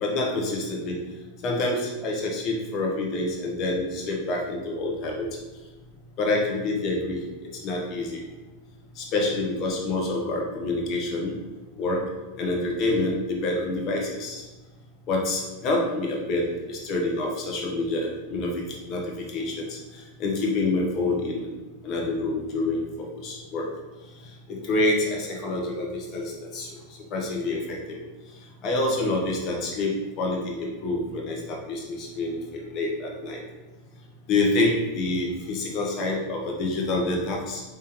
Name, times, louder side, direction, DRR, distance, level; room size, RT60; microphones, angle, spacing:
voice 1, 0.0-0.9 1.4-5.3 6.2-7.2 7.6-8.2 9.0-11.3 11.8-12.0 12.4-13.1 13.4-14.5 15.1-18.5 18.9-19.0 19.3-21.5 21.8-23.7 24.5-26.7 27.1-28.0 28.6-33.4 34.3-37.6, left 2 dB, 45° left, -1 dB, 0.9 m, -27 dB
3.5 x 3.4 x 2.9 m, 1.2 s
hypercardioid pair, 100°, 0 cm